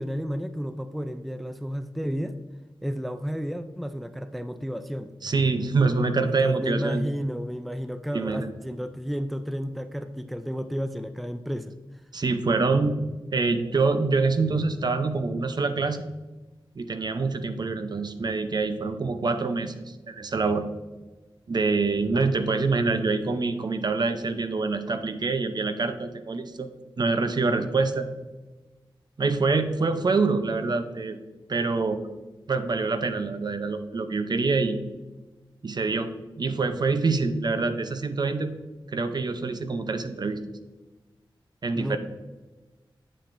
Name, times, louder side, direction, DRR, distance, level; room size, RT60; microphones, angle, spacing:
voice 1, 0.0-2.4 2.8-5.1 6.3-11.8 41.8-42.0, equal, ahead, 10 dB, 0.4 m, -32 dB
voice 2, 5.2-7.0 8.1-8.5 12.1-13.0 13.3-16.0 16.8-20.6 21.5-26.7 27.0-28.1 29.2-31.2 31.5-32.0 32.5-34.8 35.6-36.1 36.4-38.5 38.9-40.4 41.6-42.0, right 3 dB, 50° right, 9 dB, 0.7 m, -25 dB
8.6 x 7.5 x 2.6 m, 1.2 s
wide cardioid pair, 110°, 9 cm